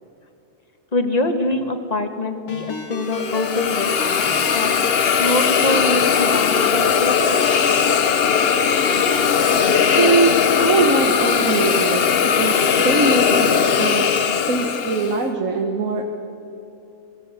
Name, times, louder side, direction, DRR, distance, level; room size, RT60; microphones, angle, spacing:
voice 1, 0.9-7.4, left 2 dB, 25° left, 6 dB, 1.5 m, -25 dB
Ringtone, 2.5-9.3, left 4 dB, 70° left, 2.3 m, -30 dB
Hiss, 3.1-15.2, left 7 dB, 50° left, 0.8 m, -19 dB
voice 2, 9.7-13.5 13.7-16.0, right 3 dB, 55° right, 2 dB, 1.7 m, -22 dB
22.5 x 17.0 x 8.1 m, 2.8 s
omnidirectional pair, 1.7 m